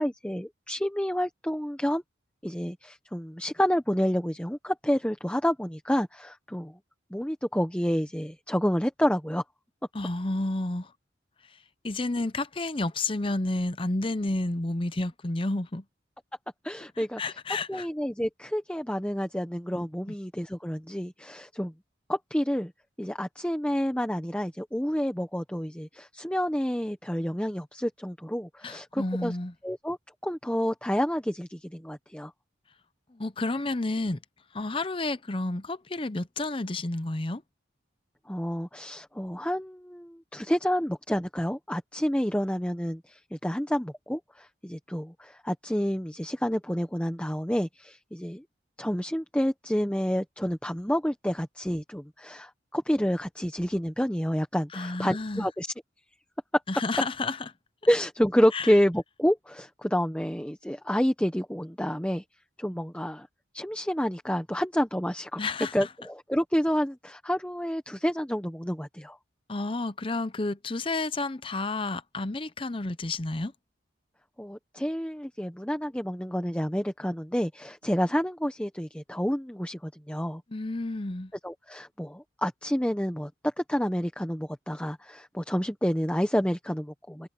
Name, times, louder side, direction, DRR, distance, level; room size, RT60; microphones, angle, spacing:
voice 1, 0.0-2.0 2.4-6.7 7.1-9.4 16.6-17.2 17.7-21.7 22.1-22.7 23.0-29.3 29.6-30.0 30.2-32.3 38.3-48.4 48.8-55.7 57.9-62.2 62.6-63.3 63.5-65.4 65.7-69.2 74.4-80.4 81.4-87.3, equal, 5° left, 1.1 m, -29 dB
voice 2, 9.9-10.9 11.5-11.6 11.8-15.8 17.0-17.9 28.6-29.5 33.1-34.2 34.5-37.4 54.7-55.5 56.7-57.5 58.5-58.7 65.4-65.8 69.5-73.5 80.5-81.3, left 2 dB, 30° left, 0.7 m, -30 dB
head